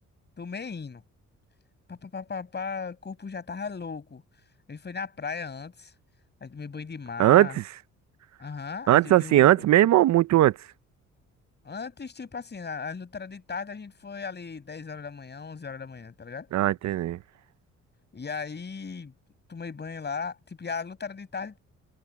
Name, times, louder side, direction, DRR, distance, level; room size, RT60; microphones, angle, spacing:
voice 1, 0.4-1.0 1.9-4.2 4.7-5.9 6.4-7.6 8.4-9.6 11.6-16.5 18.1-19.1 19.5-21.6, left 5 dB, 35° left, 5.8 m, -37 dB
voice 2, 7.2-7.6 8.9-10.6 16.5-17.2, right 14 dB, 65° right, 0.6 m, -19 dB
cardioid pair, 90°, 30 cm